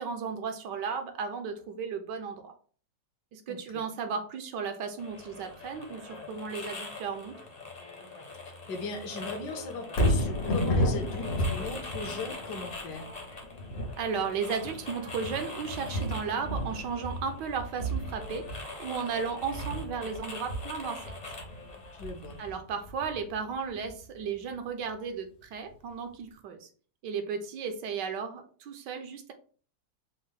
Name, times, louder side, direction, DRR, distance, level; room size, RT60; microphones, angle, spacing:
voice 1, 0.0-2.5 3.3-7.4 14.0-18.5 18.8-21.0 22.4-26.7 27.0-29.3, right 6 dB, 75° right, 6 dB, 1.3 m, -35 dB
sound 1, 5.0-22.5, left 3 dB, 35° left, 0.7 m, -43 dB
voice 2, 8.7-13.0 21.9-22.4, left 3 dB, 70° left, 5 dB, 1.4 m, -38 dB
Thunder, 9.9-24.1 24.5-24.6, equal, 90° left, 1.9 m, -33 dB
5.2 x 2.1 x 3.9 m, 0.43 s
omnidirectional pair, 2.0 m